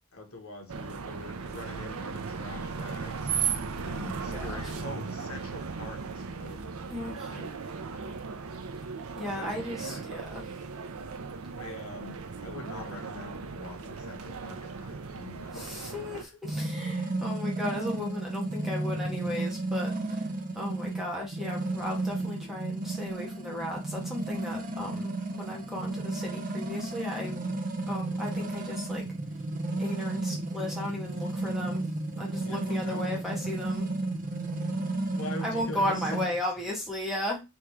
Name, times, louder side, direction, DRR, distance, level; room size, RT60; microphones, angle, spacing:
voice 1, 0.1-6.8 7.3-7.6 7.9-8.2 9.3-10.0 11.6-16.3 32.4-33.7 34.2-36.4, left 2 dB, 85° left, 1.4 m, -45 dB
sound 1, 0.7-16.2, right 5 dB, 85° right, 0.6 m, -37 dB
voice 2, 3.9-4.7 6.9-7.3 9.1-10.5 15.5-27.4 27.9-29.1 29.8-31.9 32.1-33.9 35.4-37.4, left 1 dB, ahead, 1.3 m, -35 dB
sound 2, 16.4-36.3, right 2 dB, 40° right, 0.6 m, -33 dB
3.6 x 3.0 x 4.6 m
head